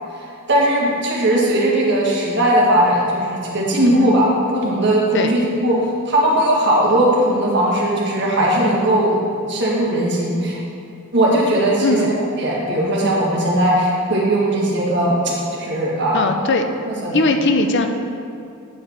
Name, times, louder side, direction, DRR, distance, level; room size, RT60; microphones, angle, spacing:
voice 1, 0.5-5.7 6.1-9.2 9.5-10.6 11.1-15.2 15.5-16.3 16.9-17.2, right 1 dB, 55° right, -4 dB, 1.7 m, -18 dB
voice 2, 3.8-4.1 5.1-5.3 11.8-12.1 16.1-16.6 17.1-17.9, left 3 dB, 60° left, 5 dB, 0.6 m, -19 dB
8.9 x 5.1 x 4.5 m, 2.5 s
head